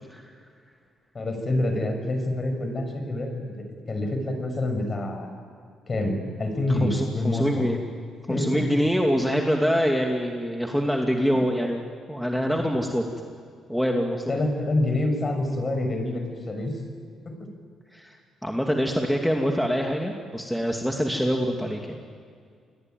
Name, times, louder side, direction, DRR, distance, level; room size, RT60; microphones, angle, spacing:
voice 1, 1.1-5.3 5.9-7.7 8.3-8.9 12.6-12.7 14.3-16.8 17.2-17.5, left 1 dB, 35° left, 5 dB, 6.4 m, -27 dB
voice 2, 6.7-7.8 8.3-11.8 12.1-13.0 13.7-14.4 17.9-18.1 18.4-22.0, equal, ahead, 1 dB, 2.5 m, -25 dB
28.5 x 21.5 x 9.4 m, 2.2 s
cardioid pair, 90°, 0 cm